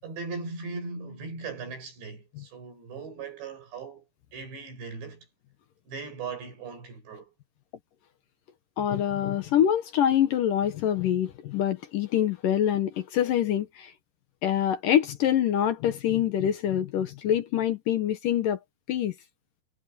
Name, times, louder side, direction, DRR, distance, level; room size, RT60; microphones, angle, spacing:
voice 1, 0.0-4.1 4.3-5.3 5.9-7.3, right 4 dB, 85° right, 8.9 m, -38 dB
voice 2, 8.8-13.9 14.4-18.6 18.9-19.1, left 10 dB, 70° left, 2.3 m, -25 dB
omnidirectional pair, 4.9 m